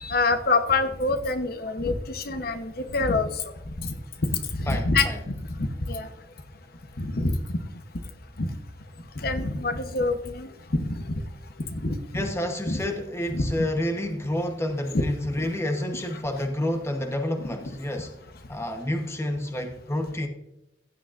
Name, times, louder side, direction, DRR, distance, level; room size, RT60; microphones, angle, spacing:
voice 1, 0.0-3.3 3.8-3.9 4.5-5.1 5.9-6.1 7.0-7.3 8.4-8.5 9.2-10.5 10.7-11.0 11.8-11.9 12.7-12.8 13.3-13.5 14.9-15.0 15.4-15.5, left 3 dB, 55° left, 8 dB, 0.9 m, -25 dB
voice 2, 4.7-5.2 12.1-18.1 18.5-20.3, left 1 dB, 15° left, 5 dB, 1.0 m, -29 dB
15.5 x 9.0 x 2.5 m, 0.88 s
head